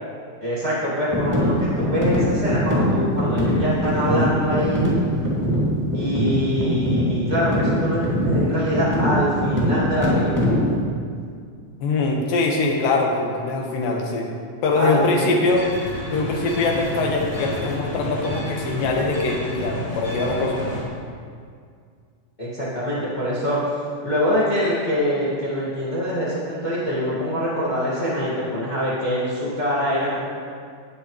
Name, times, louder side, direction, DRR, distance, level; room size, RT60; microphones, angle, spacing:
voice 1, 0.4-4.9 5.9-10.6 14.7-15.3 22.4-23.6 24.0-30.3, equal, 55° left, -9 dB, 0.5 m, -24 dB
sound 1, 1.1-10.8, equal, 10° right, 1.3 m, -22 dB
voice 2, 11.8-14.3 14.6-15.7 16.1-20.6, left 3 dB, 70° left, 0 dB, 2.9 m, -22 dB
sound 2, 15.4-20.8, equal, 40° left, 2.2 m, -30 dB
18.5 x 6.5 x 3.1 m, 2.2 s
omnidirectional pair, 4.2 m